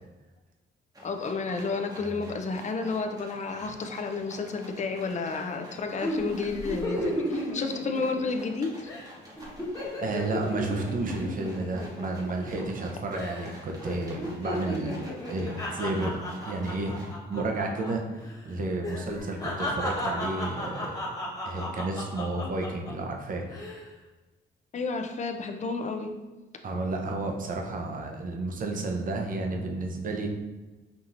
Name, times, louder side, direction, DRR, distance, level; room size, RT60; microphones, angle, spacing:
sound 1, 0.9-17.1, equal, 20° right, 1.0 m, -48 dB
voice 1, 1.0-7.1 7.5-8.9 24.7-26.1, left 4 dB, 35° left, 5 dB, 0.5 m, -31 dB
sound 2, 6.0-8.5 8.9-9.1 9.4-12.8 13.1-13.5 13.8-17.9 18.2-18.4 18.8-22.9 23.4-23.8, left 1 dB, 15° left, 1.2 m, -34 dB
voice 2, 10.0-15.0 15.3-16.1 16.4-17.0 17.3-18.0 18.4-21.0 21.4-23.5 26.6-30.3, right 2 dB, 45° right, 2 dB, 0.7 m, -31 dB
5.7 x 2.8 x 2.5 m, 1.2 s
cardioid pair, 90°, 20 cm